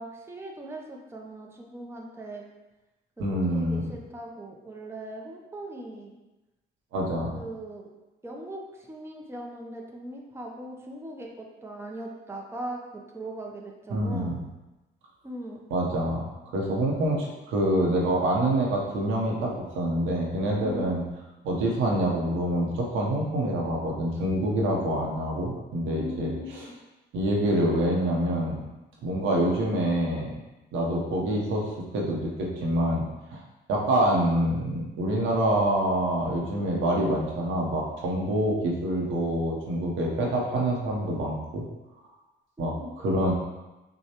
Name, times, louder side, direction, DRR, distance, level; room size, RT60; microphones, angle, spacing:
voice 1, 0.0-2.4 3.2-6.2 7.3-7.9 8.2-14.4 15.2-15.6 20.6-21.0 25.9-26.8 42.7-43.0, right 1 dB, 10° right, -1 dB, 0.7 m, -39 dB
voice 2, 3.2-3.8 6.9-7.4 13.9-14.3 15.7-16.2 16.5-21.0 21.4-26.6 27.1-28.6 29.0-30.3 30.7-33.0 33.3-33.4 33.7-41.6 42.6-43.3, right 1 dB, 85° right, -2 dB, 0.9 m, -26 dB
6.3 x 2.3 x 2.9 m, 1.0 s
cardioid pair, 90°, 20 cm